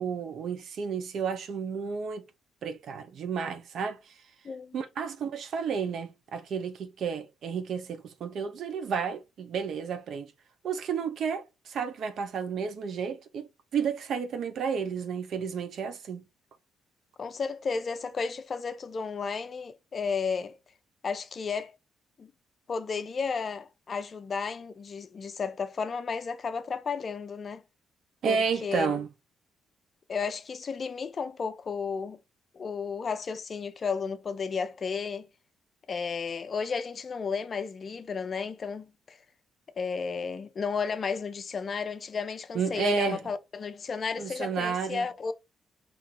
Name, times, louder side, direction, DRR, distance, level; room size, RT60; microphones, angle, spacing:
voice 1, 0.0-2.2 2.6-4.1 4.7-10.3 10.6-16.2 28.2-29.1 42.5-43.2 44.2-45.1, right 6 dB, 65° right, 0.9 m, -31 dB
voice 2, 4.4-4.8 17.2-20.6 21.0-21.7 22.2-22.3 22.7-27.6 28.3-29.0 30.1-32.2 32.5-35.3 35.9-39.2 39.8-45.3, left 5 dB, 45° left, 0.6 m, -33 dB
4.4 x 3.0 x 3.7 m
cardioid pair, 90°, 0 cm